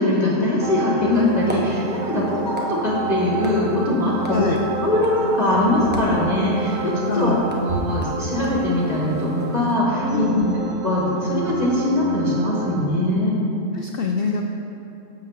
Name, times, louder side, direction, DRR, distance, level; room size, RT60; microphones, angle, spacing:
voice 1, 0.0-4.5 4.8-7.3 7.6-10.3 10.5-13.3, left 1 dB, 30° left, -7 dB, 1.1 m, -22 dB
sound 1, 0.6-12.9, right 4 dB, 90° right, 0.4 m, -29 dB
sound 2, 1.1-9.7, right 1 dB, 10° right, 0.5 m, -36 dB
voice 2, 4.2-4.6 7.1-7.4 10.1-10.6 13.7-14.5, left 5 dB, 85° left, 3 dB, 0.5 m, -24 dB
5.9 x 5.8 x 6.8 m, 2.8 s
omnidirectional pair, 1.6 m